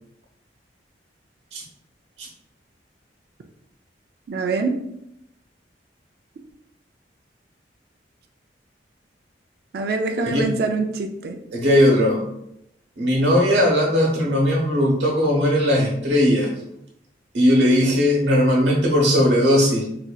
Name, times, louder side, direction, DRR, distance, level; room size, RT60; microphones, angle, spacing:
voice 1, 4.3-4.8 9.7-11.4, right 3 dB, 60° right, 4 dB, 0.4 m, -24 dB
voice 2, 11.5-12.2 13.0-16.5 17.3-19.9, equal, 75° right, -1 dB, 1.0 m, -18 dB
4.1 x 2.7 x 2.3 m, 0.79 s
head